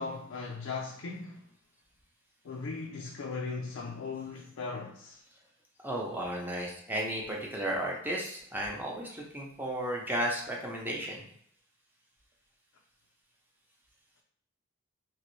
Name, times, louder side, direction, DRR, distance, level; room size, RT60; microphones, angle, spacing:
voice 1, 0.0-1.5 2.4-5.2, left 4 dB, 85° left, 0.4 m, -38 dB
voice 2, 5.8-11.2, right 1 dB, 10° right, 0.7 m, -34 dB
3.2 x 2.9 x 3.1 m
head